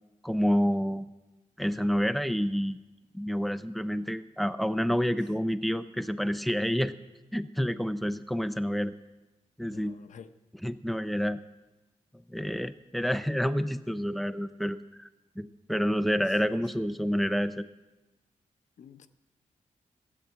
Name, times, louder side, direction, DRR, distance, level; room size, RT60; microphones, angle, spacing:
voice 1, 0.2-1.1 1.6-2.8 3.1-6.9 7.3-8.9 9.6-9.9 10.6-11.4 12.3-15.1 15.4-17.7, equal, ahead, 0.6 m, -28 dB
voice 2, 9.7-10.3 16.2-16.4 18.8-19.1, left 7 dB, 70° left, 0.7 m, -50 dB
14.0 x 8.7 x 8.0 m
wide cardioid pair, 110°, 13 cm